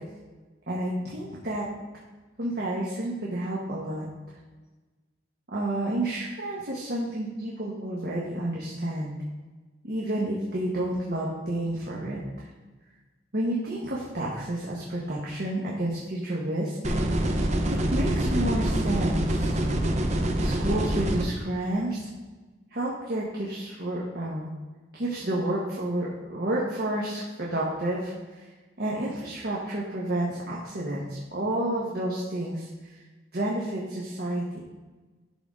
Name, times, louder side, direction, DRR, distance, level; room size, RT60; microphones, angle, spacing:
voice 1, 0.7-1.6 2.4-4.1 5.5-9.1 9.8-12.2 13.3-16.9 17.7-19.6 20.4-22.1 22.7-24.5 24.9-28.4 28.8-32.7 33.3-34.6, right 1 dB, 55° right, -5 dB, 1.3 m, -30 dB
sound 1, 16.8-21.2, right 1 dB, 35° right, 0.7 m, -25 dB
11.5 x 3.9 x 3.7 m, 1.3 s
head